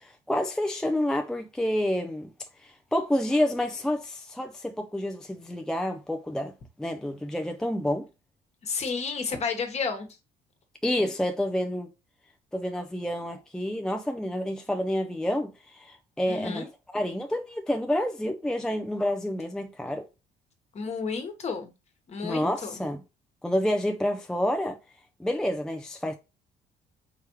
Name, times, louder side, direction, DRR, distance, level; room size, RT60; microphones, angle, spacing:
voice 1, 0.0-2.3 2.6-6.5 6.8-8.1 10.8-11.9 12.5-16.7 16.9-20.0 22.2-23.0 23.4-24.8 25.2-26.2, left 1 dB, 5° left, 0.4 m, -28 dB
voice 2, 8.6-10.1 16.3-16.7 20.7-21.7 22.1-22.8, left 5 dB, 40° left, 1.2 m, -31 dB
4.7 x 3.3 x 3.0 m
cardioid pair, 110°, 17 cm